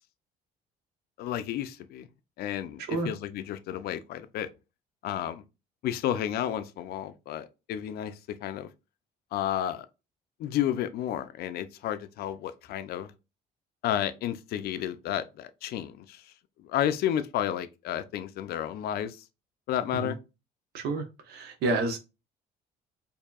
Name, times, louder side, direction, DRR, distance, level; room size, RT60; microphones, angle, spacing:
voice 1, 1.2-2.1 2.4-4.5 5.0-5.4 5.8-8.7 9.3-9.9 10.4-13.1 13.8-16.3 16.6-19.2 19.7-20.2, left 11 dB, 65° left, 0.4 m, -31 dB
voice 2, 20.7-22.0, right 3 dB, 75° right, 0.9 m, -29 dB
4.6 x 2.7 x 2.3 m
cardioid pair, 110°, 17 cm